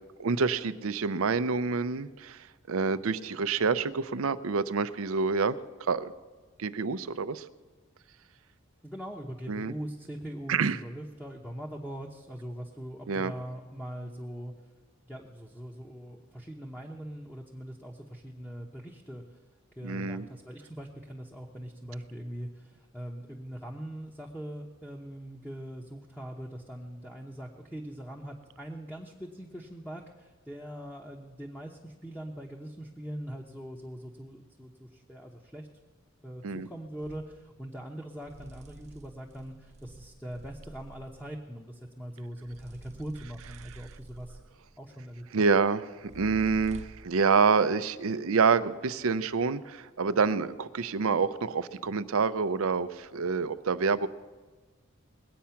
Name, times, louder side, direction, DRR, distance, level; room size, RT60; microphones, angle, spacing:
voice 1, 0.2-6.1 6.6-7.4 9.5-9.7 10.5-10.8 13.1-13.3 19.8-20.3 36.4-36.7 45.3-54.1, right 5 dB, 85° right, 13 dB, 0.6 m, -27 dB
voice 2, 8.8-14.5 15.0-19.4 19.8-35.7 36.2-44.4 44.8-45.4, equal, 5° left, -1 dB, 0.9 m, -42 dB
sound 1, 37.0-37.3 38.2-41.2 42.4-44.7 46.0-47.1, right 2 dB, 30° right, 0.4 m, -49 dB
21.0 x 8.5 x 5.8 m, 1.3 s
head